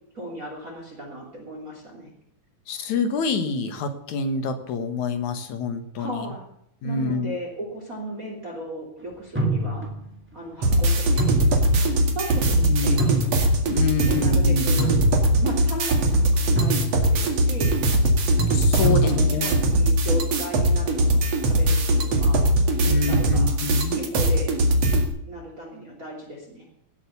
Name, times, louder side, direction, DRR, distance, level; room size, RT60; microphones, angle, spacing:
voice 1, 0.1-2.1 6.0-6.4 6.8-9.9 10.3-11.4 12.1-13.2 14.1-15.0 15.4-17.8 18.8-19.1 19.4-22.4 22.8-23.5 23.9-24.5 25.3-26.7, equal, 25° right, -1 dB, 3.4 m, -36 dB
voice 2, 2.7-6.3 6.8-7.3 12.6-13.1 13.7-14.9 18.5-19.6 22.9-24.0, left 3 dB, 65° left, 8 dB, 2.7 m, -27 dB
sound 1, 9.4-10.2 11.2-11.9 12.3-12.4 13.0-13.7 14.8-15.6 15.9-16.2 16.6-17.2 18.4-19.1, right 2 dB, 5° right, 1.0 m, -25 dB
sound 2, 10.6-25.0, right 1 dB, 50° right, 3.0 m, -21 dB
18.5 x 8.3 x 7.0 m, 0.75 s
omnidirectional pair, 3.9 m